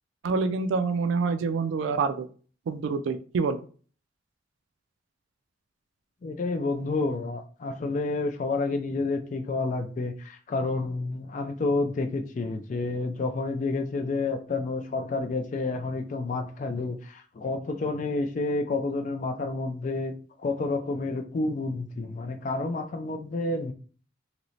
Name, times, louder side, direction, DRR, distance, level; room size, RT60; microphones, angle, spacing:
voice 1, 0.2-2.3 2.7-3.6, right 4 dB, 90° right, 9 dB, 0.3 m, -26 dB
voice 2, 6.2-23.7, left 3 dB, 40° left, 6 dB, 0.3 m, -29 dB
3.1 x 2.8 x 2.7 m, 0.41 s
head